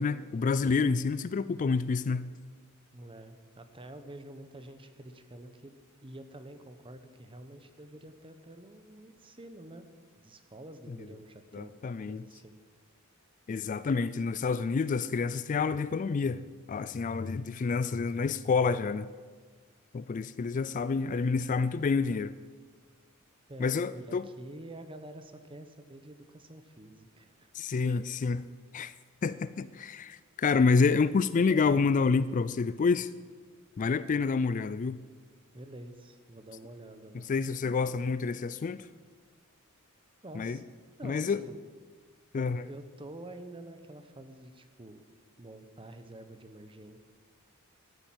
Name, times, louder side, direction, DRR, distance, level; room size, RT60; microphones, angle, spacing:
voice 1, 0.0-2.3 11.5-12.2 13.5-16.4 16.7-19.1 19.9-22.3 23.6-24.3 27.5-28.4 28.7-28.9 29.2-33.1 33.8-35.0 37.3-38.9 40.3-40.6 41.0-41.4 42.3-42.6, left 4 dB, 35° left, 0.3 m, -28 dB
voice 2, 2.9-5.7 6.0-9.9 10.1-12.6 23.5-27.5 35.5-37.3 40.2-40.6 41.0-41.6 42.3-45.0 45.4-47.0, right 1 dB, 25° right, 1.0 m, -48 dB
13.0 x 9.8 x 7.6 m
head